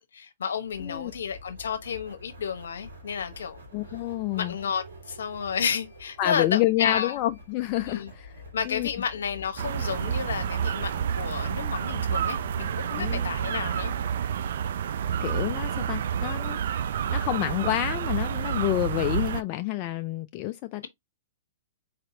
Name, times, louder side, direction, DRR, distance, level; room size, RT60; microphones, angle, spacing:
voice 1, 0.0-3.6 3.9-4.0 4.3-7.2 7.8-8.1 8.5-13.9, left 7 dB, 70° left, 0.9 m, -31 dB
sound 1, 0.6-17.1, left 2 dB, 85° right, 3.2 m, -48 dB
voice 2, 0.8-1.1 3.7-4.5 6.2-8.3 8.7-8.9 13.0-13.2 15.2-16.8 17.1-20.9, left 15 dB, 40° left, 0.4 m, -28 dB
sound 2, 9.6-19.4, right 8 dB, 65° right, 0.4 m, -29 dB
4.2 x 4.0 x 2.6 m
hypercardioid pair, 115°, 0 cm